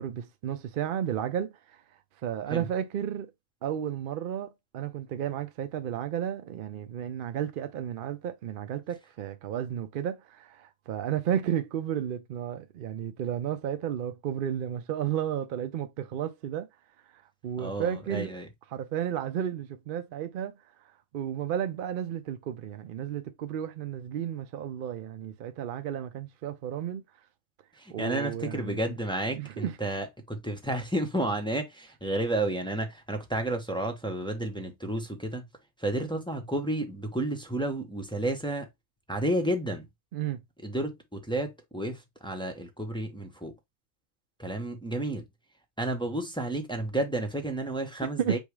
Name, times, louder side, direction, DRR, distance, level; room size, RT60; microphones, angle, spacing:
voice 1, 0.0-1.8 2.2-3.3 3.6-16.7 17.1-18.3 18.7-20.5 21.1-27.0 27.9-29.0 29.4-30.0 40.1-40.4 48.2-48.4, right 10 dB, 65° right, 0.5 m, -33 dB
voice 2, 17.6-18.5 27.8-35.4 35.8-38.7 39.1-39.9 40.6-43.5 44.4-45.3 45.8-48.4, right 1 dB, 5° left, 0.4 m, -31 dB
5.4 x 2.0 x 4.6 m
omnidirectional pair, 1.4 m